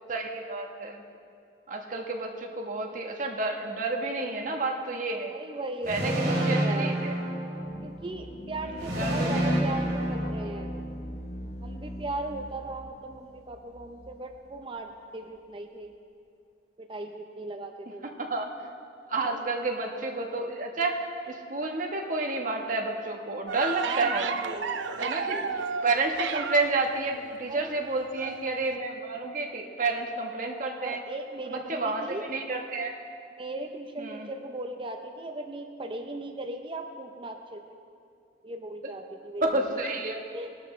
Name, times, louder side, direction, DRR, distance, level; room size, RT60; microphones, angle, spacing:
voice 1, 0.1-1.0 1.7-5.3 5.9-7.1 8.7-9.1 9.6-9.7 18.0-18.7 19.1-21.0 21.3-24.4 25.0-25.4 25.8-31.0 31.4-33.0 34.0-34.3 39.4-40.2, right 3 dB, 45° right, 1 dB, 1.3 m, -30 dB
voice 2, 5.3-7.0 7.8-10.7 11.6-15.9 16.8-18.1 19.2-19.5 23.8-25.5 27.5-27.8 30.8-32.2 33.3-37.8 38.4-39.8 40.3-40.5, right 2 dB, 30° right, 5 dB, 0.7 m, -38 dB
sound 1, 5.8-8.0 8.8-11.0, right 1 dB, 70° right, 4.0 m, -29 dB
sound 2, 7.5-14.7, equal, 60° left, 0.8 m, -42 dB
sound 3, 23.5-26.9 28.1-28.4 28.7-28.8, right 5 dB, 90° right, 0.6 m, -32 dB
20.0 x 12.0 x 3.3 m, 2.4 s
head